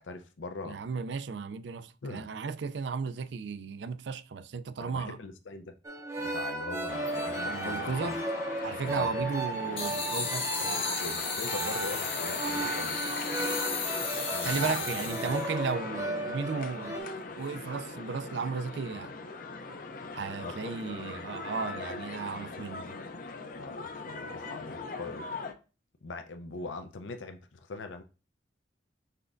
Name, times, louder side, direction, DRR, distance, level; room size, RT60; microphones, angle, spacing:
voice 1, 0.0-0.8 2.0-2.3 4.8-5.7 6.2-8.2 8.8-9.3 11.0-13.0 14.3-14.7 15.0-15.5 20.4-20.8 22.5-22.6 23.6-25.3 26.0-28.0, left 3 dB, 90° left, 0.6 m, -41 dB
voice 2, 0.6-5.2 7.4-8.2 8.6-10.8 14.4-17.0 17.4-19.1 20.1-23.0, right 5 dB, 70° right, 0.4 m, -35 dB
sound 1, 5.8-17.0, right 2 dB, 15° right, 0.5 m, -35 dB
sound 2, 6.9-25.5, left 4 dB, 45° left, 0.5 m, -39 dB
sound 3, 9.8-15.5, left 4 dB, 30° left, 1.0 m, -35 dB
5.7 x 3.4 x 2.6 m
head